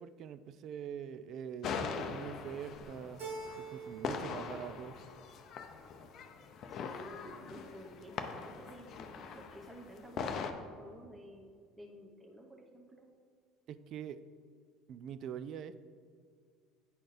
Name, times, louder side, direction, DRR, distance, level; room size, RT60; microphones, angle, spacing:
voice 1, 0.0-3.3 3.6-5.0 13.7-14.2 14.9-15.8, right 8 dB, 55° right, 13 dB, 0.3 m, -44 dB
sound 1, 1.6-10.5, left 6 dB, 55° left, 0.5 m, -42 dB
Keyboard (musical), 3.2-4.3 4.6-5.4, right 4 dB, 80° right, 1.5 m, -45 dB
voice 2, 6.4-13.1, equal, 15° right, 1 dB, 0.9 m, -52 dB
9.7 x 4.2 x 3.3 m, 2.1 s
hypercardioid pair, 85°, 0 cm